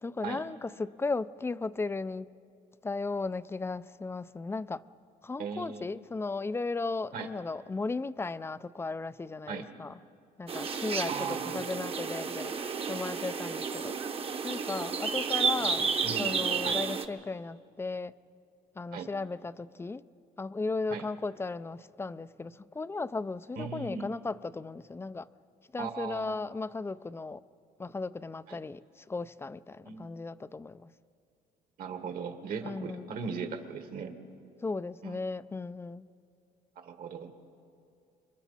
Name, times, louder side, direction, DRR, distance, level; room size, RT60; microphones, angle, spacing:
voice 1, 0.0-2.3 2.8-4.8 5.2-10.0 10.4-12.5 12.9-13.9 14.4-18.2 18.8-20.0 20.4-25.3 25.7-27.4 27.8-30.9 32.6-33.1 34.6-36.0, left 3 dB, 15° left, 16 dB, 0.4 m, -36 dB
voice 2, 5.4-5.9 7.1-7.3 9.5-9.7 11.1-11.6 16.0-16.3 16.6-16.8 18.9-19.1 20.9-21.1 23.6-24.1 25.8-26.3 28.5-28.6 29.9-30.1 31.8-34.1 35.0-35.2 36.8-37.3, right 5 dB, 60° right, 6 dB, 1.7 m, -38 dB
sound 1, 10.5-17.0, right 5 dB, 35° right, 1.0 m, -32 dB
27.0 x 23.5 x 4.2 m, 2.4 s
cardioid pair, 110°, 17 cm